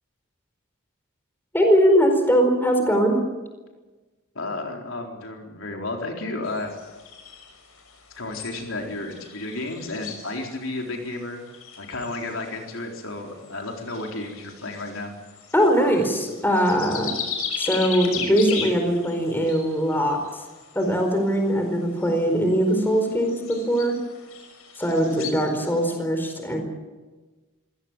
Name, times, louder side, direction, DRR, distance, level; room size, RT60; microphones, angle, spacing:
voice 1, 1.5-3.2 15.5-17.1 17.6-20.2 20.7-24.0 24.8-26.6, equal, 10° left, 4 dB, 4.4 m, -21 dB
voice 2, 4.3-6.7 8.2-11.4 11.8-15.1, left 2 dB, 65° left, 2 dB, 4.1 m, -32 dB
sound 1, 6.4-25.9, left 6 dB, 90° left, 5.7 m, -38 dB
26.0 x 17.0 x 9.1 m, 1.2 s
head